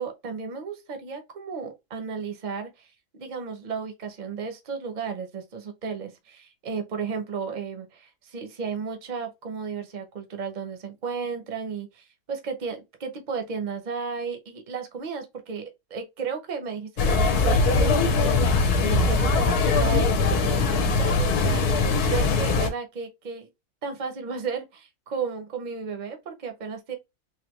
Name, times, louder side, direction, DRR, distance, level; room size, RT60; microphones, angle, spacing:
voice 1, 0.0-23.5 23.8-27.0, right 5 dB, 40° right, 0.7 m, -34 dB
sound 1, 17.0-22.7, left 3 dB, 85° left, 1.3 m, -21 dB
4.0 x 2.6 x 3.0 m
omnidirectional pair, 1.6 m